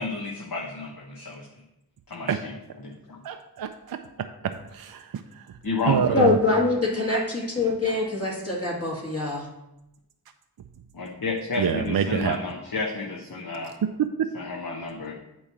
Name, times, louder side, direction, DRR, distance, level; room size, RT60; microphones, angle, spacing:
voice 1, 0.0-1.5 2.1-3.2 5.6-6.3 10.9-13.8 14.3-15.1, left 3 dB, 60° left, -2 dB, 1.0 m, -31 dB
voice 2, 3.2-4.0 4.7-5.1 5.9-6.4 11.6-12.4 14.0-14.3, right 8 dB, 65° right, 7 dB, 0.5 m, -25 dB
voice 3, 6.1-9.5, left 3 dB, 35° left, -4 dB, 1.8 m, -24 dB
8.5 x 3.1 x 5.7 m, 0.90 s
wide cardioid pair, 55°, 40 cm